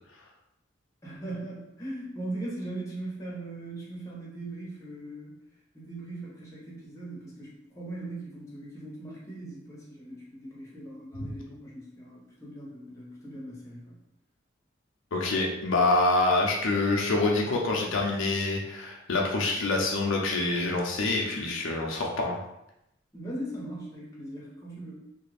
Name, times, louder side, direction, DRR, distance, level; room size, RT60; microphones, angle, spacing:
voice 1, 1.0-5.4 5.7-14.0 23.1-25.0, right 1 dB, 15° left, -6 dB, 0.9 m, -39 dB
voice 2, 15.1-22.4, left 2 dB, 80° left, 0 dB, 0.5 m, -26 dB
2.8 x 2.4 x 3.3 m, 0.84 s
head